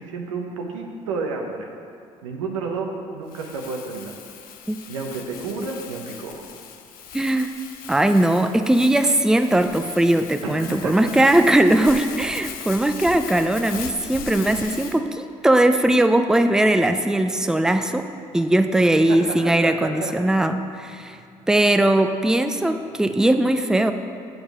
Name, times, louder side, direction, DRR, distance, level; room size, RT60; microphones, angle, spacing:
voice 1, 0.0-1.7 2.2-4.1 4.9-6.5 10.4-11.1 19.1-20.1, right 4 dB, 90° right, 2 dB, 0.9 m, -31 dB
Crumpling crinkling, 3.3-15.0, left 8 dB, 65° left, 0.7 m, -39 dB
voice 2, 7.1-7.5 7.9-18.1 18.3-21.2 21.5-23.9, right 1 dB, 5° right, 8 dB, 0.5 m, -19 dB
8.2 x 5.2 x 6.0 m, 2.5 s
hypercardioid pair, 60°, 16 cm